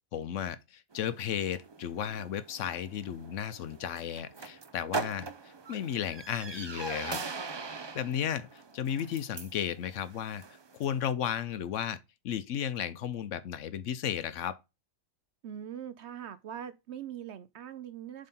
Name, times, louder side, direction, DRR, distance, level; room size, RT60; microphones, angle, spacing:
voice 1, 0.1-7.2 7.9-10.4 10.7-12.0 12.2-14.6, left 9 dB, 70° left, 1.0 m, -34 dB
sound 1, 0.9-11.0, right 4 dB, 45° right, 0.3 m, -42 dB
voice 2, 15.4-18.3, right 9 dB, 65° right, 0.8 m, -42 dB
7.2 x 3.8 x 4.2 m
omnidirectional pair, 1.4 m